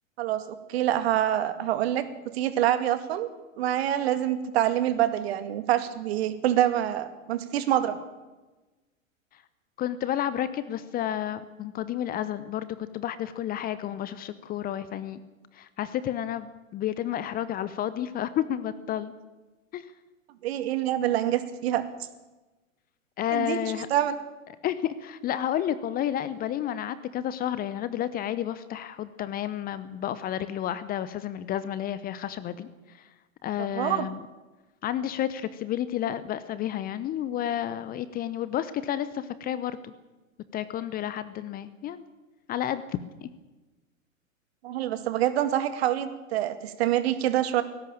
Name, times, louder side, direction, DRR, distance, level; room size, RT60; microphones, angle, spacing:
voice 1, 0.2-3.3 3.6-8.0 20.4-21.8 23.3-23.6 23.9-24.2 33.6-34.1 44.6-47.6, right 12 dB, 50° right, 11 dB, 2.0 m, -26 dB
voice 2, 9.8-15.2 15.5-19.1 19.7-19.8 23.2-23.9 24.6-32.7 32.9-33.1 33.4-34.2 34.8-39.9 40.5-42.0 42.5-43.3, left 11 dB, 20° left, 14 dB, 0.9 m, -31 dB
18.5 x 17.0 x 8.8 m, 1.2 s
figure-of-eight pair, 105°, 41 cm